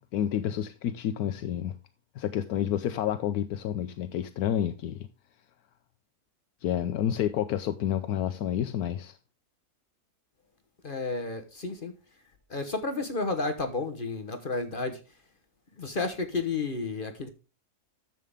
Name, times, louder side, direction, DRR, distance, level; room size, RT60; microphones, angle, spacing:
voice 1, 0.1-1.8 2.2-5.1 6.6-9.1, left 10 dB, 80° left, 1.1 m, -29 dB
voice 2, 10.8-11.9 12.5-15.0 15.8-17.3, left 3 dB, 40° left, 1.1 m, -31 dB
10.5 x 7.5 x 3.5 m
omnidirectional pair, 1.6 m